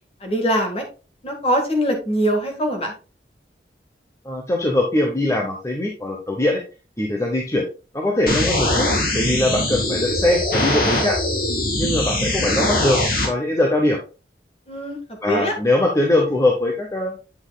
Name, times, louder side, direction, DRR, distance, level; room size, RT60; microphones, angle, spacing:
voice 1, 0.2-0.8 1.2-2.9 14.7-15.0 15.2-15.5, equal, 35° left, 3 dB, 1.6 m, -22 dB
voice 2, 4.2-6.6 7.0-7.6 7.9-8.9 9.1-11.2 11.8-14.0 15.2-17.2, left 1 dB, 15° left, 1 dB, 0.8 m, -21 dB
sound 1, 8.3-13.3, left 1 dB, 55° left, 2.2 m, -22 dB
8.4 x 5.9 x 2.3 m, 0.34 s
head